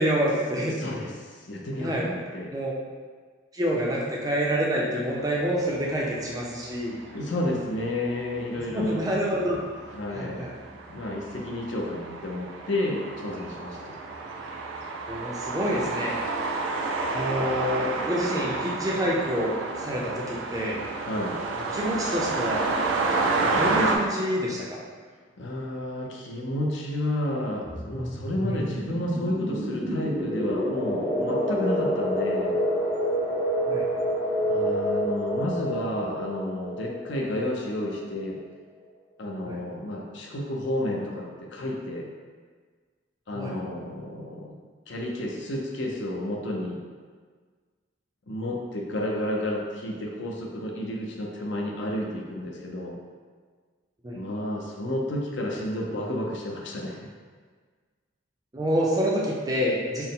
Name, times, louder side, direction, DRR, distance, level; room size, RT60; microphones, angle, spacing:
voice 1, 0.0-0.8 1.8-2.1 2.5-2.7 3.5-7.0 8.7-9.6 10.1-10.5 15.1-16.1 17.1-20.8 21.7-22.7 23.4-24.8 28.4-28.5 33.7-33.9 39.4-39.6 43.3-43.5 54.0-54.2 58.5-60.1, equal, 20° right, -3 dB, 0.4 m, -27 dB
voice 2, 0.8-2.5 7.1-9.1 9.8-10.5 10.9-14.0 21.0-21.4 25.4-32.6 34.5-38.4 39.2-42.1 43.3-44.5 44.9-46.8 48.3-53.0 54.1-57.0, left 1 dB, 65° left, -1 dB, 0.6 m, -31 dB
sound 1, 5.6-5.9 6.5-7.5 7.9-8.0 8.4-24.0, right 3 dB, 80° right, 0.4 m, -30 dB
sound 2, 27.6-38.1, equal, 15° left, 0.7 m, -28 dB
4.3 x 2.0 x 3.6 m, 1.5 s
head